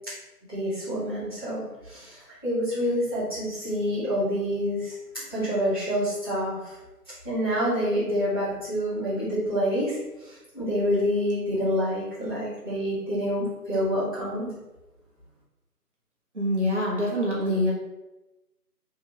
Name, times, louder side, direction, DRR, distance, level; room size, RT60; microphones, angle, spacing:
voice 1, 0.5-2.2 2.4-4.9 5.3-6.6 7.2-9.9 10.3-14.5, equal, 15° left, -15 dB, 1.2 m, -27 dB
voice 2, 16.3-17.7, equal, 45° right, -5 dB, 1.0 m, -25 dB
3.4 x 2.9 x 4.3 m, 1.0 s
figure-of-eight pair, 165°, 48 cm